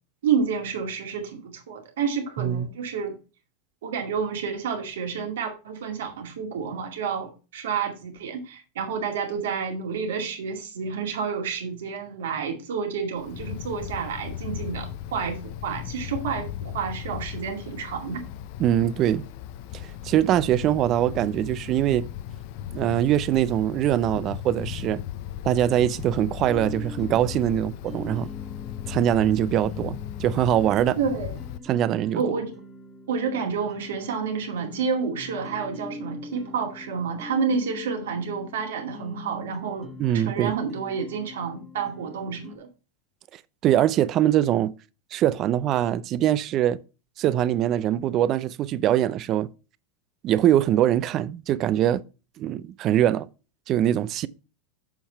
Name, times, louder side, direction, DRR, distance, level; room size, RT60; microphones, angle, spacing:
voice 1, 0.2-3.1 3.8-18.3 31.0-31.3 32.1-32.5 33.1-42.7, right 6 dB, 80° right, 2.2 m, -29 dB
Wind, 13.2-31.6, left 11 dB, 60° left, 0.7 m, -37 dB
voice 2, 18.6-19.2 19.7-22.0 22.7-25.0 25.4-28.3 28.9-31.0 31.7-32.2 40.0-40.5 43.6-44.7 45.1-46.8 47.2-49.5 50.2-52.0 52.4-53.3 53.7-54.3, right 11 dB, 40° right, 0.5 m, -23 dB
sound 1, 26.5-42.6, left 3 dB, ahead, 1.3 m, -43 dB
7.2 x 5.7 x 4.5 m
hypercardioid pair, 105°, 0 cm